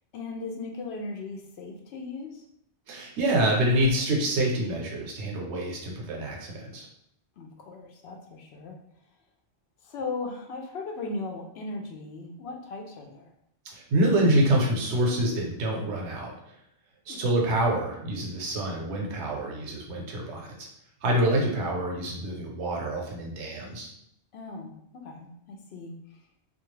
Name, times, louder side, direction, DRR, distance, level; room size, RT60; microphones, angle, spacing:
voice 1, 0.1-2.4 7.4-8.8 9.8-13.3 17.1-17.2 24.3-26.0, left 3 dB, 75° left, 2 dB, 0.8 m, -37 dB
voice 2, 2.9-6.9 13.7-16.3 17.1-20.7 21.0-23.9, right 1 dB, 85° right, -1 dB, 1.0 m, -26 dB
2.4 x 2.3 x 3.1 m, 0.75 s
omnidirectional pair, 1.1 m